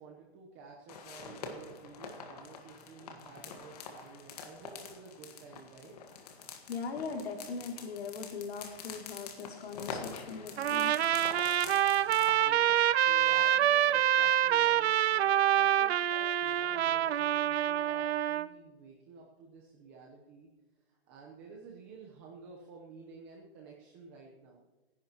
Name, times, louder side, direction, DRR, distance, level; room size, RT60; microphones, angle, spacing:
voice 1, 0.0-6.0 12.0-20.5 20.9-24.6, right 4 dB, 15° right, -1 dB, 0.9 m, -52 dB
sound 1, 0.9-12.7, left 5 dB, 40° left, 1.7 m, -46 dB
voice 2, 6.7-11.0, left 5 dB, 75° left, 2 dB, 2.9 m, -40 dB
Trumpet, 10.6-18.5, right 11 dB, 85° right, 0.6 m, -26 dB
27.5 x 11.0 x 3.0 m, 1.2 s
hypercardioid pair, 180°, 31 cm